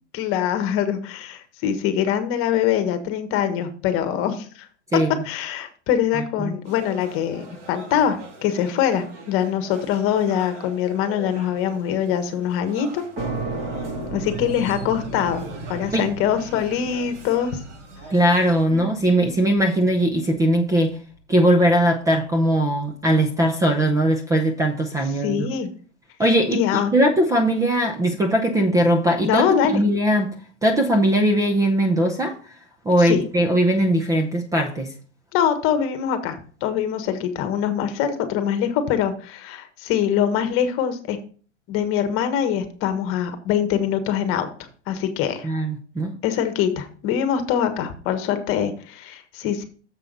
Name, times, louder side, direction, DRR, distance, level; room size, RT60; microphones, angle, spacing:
voice 1, 0.1-4.7 5.2-13.0 14.1-15.4 15.7-17.6 18.7-18.8 25.2-25.7 26.5-26.9 29.2-29.8 33.0-33.2 35.3-41.2 41.7-45.5 46.2-49.7, left 9 dB, 40° left, 9 dB, 1.3 m, -23 dB
voice 2, 4.9-5.2 6.1-6.5 15.9-16.1 18.1-21.0 21.3-25.4 26.2-30.3 30.6-32.3 32.8-34.9 45.4-46.2, right 1 dB, 10° right, 5 dB, 0.6 m, -20 dB
sound 1, 6.6-18.6, right 3 dB, 80° right, 2.4 m, -43 dB
sound 2, 13.2-20.5, right 3 dB, 25° right, 3.7 m, -34 dB
7.2 x 5.6 x 5.2 m, 0.42 s
supercardioid pair, 140°, 35 cm